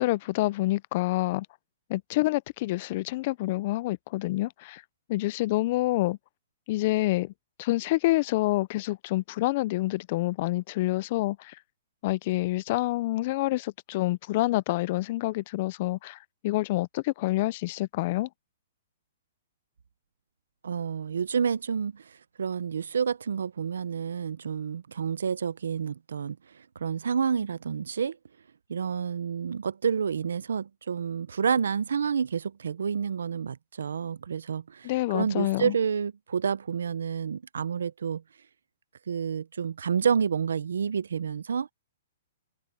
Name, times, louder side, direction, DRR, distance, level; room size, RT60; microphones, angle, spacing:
voice 1, 0.0-1.5 1.9-4.8 5.1-6.2 6.7-7.3 7.6-11.5 12.0-18.3 34.8-35.7, left 18 dB, 40° left, 0.5 m, -27 dB
voice 2, 20.6-22.0 22.4-26.4 26.8-28.2 28.7-34.9 35.1-38.2 39.1-41.7, right 7 dB, 90° right, 0.6 m, -29 dB
hypercardioid pair, 150°, 0 cm